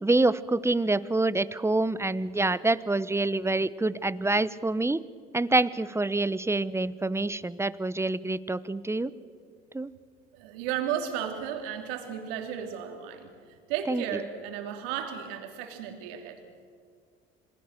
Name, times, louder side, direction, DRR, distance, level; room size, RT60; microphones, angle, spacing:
voice 1, 0.0-5.0 5.3-9.1 9.7-9.9 13.9-14.0, right 2 dB, 10° right, 17 dB, 0.9 m, -26 dB
voice 2, 10.3-16.4, right 9 dB, 75° right, 5 dB, 3.2 m, -34 dB
27.0 x 21.0 x 6.8 m, 2.1 s
hypercardioid pair, 70°, 30 cm